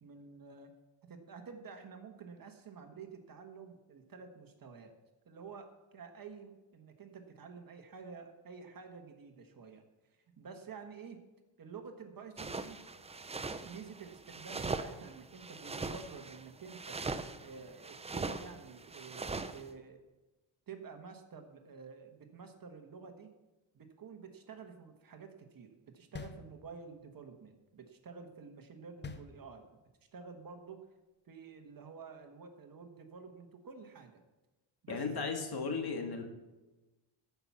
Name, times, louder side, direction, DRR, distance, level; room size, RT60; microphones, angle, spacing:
voice 1, 0.0-0.7 1.1-4.9 5.2-9.8 10.4-11.2 11.6-17.0 17.4-20.0 20.7-23.3 23.7-29.8 30.1-30.9 31.2-34.2 34.8-35.0, right 5 dB, 45° right, 6 dB, 1.5 m, -50 dB
sound 1, 12.4-19.6, right 3 dB, 15° right, 0.5 m, -41 dB
sound 2, 26.1-27.1 29.0-29.9, left 4 dB, 25° left, 0.8 m, -47 dB
voice 2, 34.9-36.2, left 4 dB, 50° left, 4 dB, 2.0 m, -35 dB
13.5 x 5.8 x 7.2 m, 1.1 s
cardioid pair, 125°, 48 cm